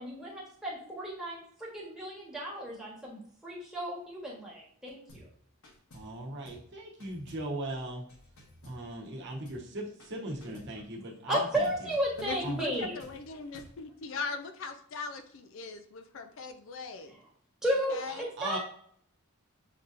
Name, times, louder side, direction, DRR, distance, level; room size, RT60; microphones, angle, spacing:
voice 1, 0.0-5.3 11.3-12.9 17.6-18.0 18.4-18.6, right 1 dB, ahead, -5 dB, 1.2 m, -33 dB
sound 1, 5.1-5.3 5.6-6.2 6.4-6.7 7.0-9.2 9.4-9.7 10.0-10.8 11.6-13.8, left 1 dB, 85° left, 1.2 m, -54 dB
voice 2, 5.9-8.0 8.6-11.9 12.4-12.6 18.1-18.6, right 1 dB, 55° right, -2 dB, 0.9 m, -39 dB
voice 3, 12.2-17.1 17.9-18.3, left 4 dB, 60° left, 7 dB, 0.4 m, -39 dB
6.9 x 2.7 x 2.5 m, 0.64 s
head